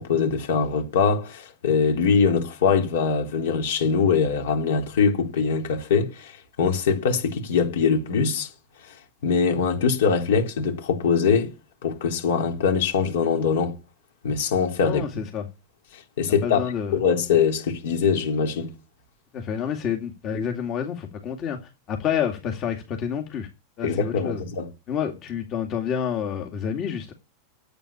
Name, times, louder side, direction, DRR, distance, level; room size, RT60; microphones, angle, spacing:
voice 1, 0.0-8.5 8.8-9.0 9.2-11.5 11.8-13.8 14.2-15.0 15.9-16.6 16.9-18.7 23.8-24.7, left 6 dB, 75° left, 3.8 m, -22 dB
voice 2, 14.8-15.4 16.4-17.0 19.3-21.6 21.9-23.5 23.8-24.4 24.9-27.1, left 8 dB, 40° left, 2.4 m, -28 dB
9.0 x 8.4 x 8.6 m
hypercardioid pair, 105°, 0 cm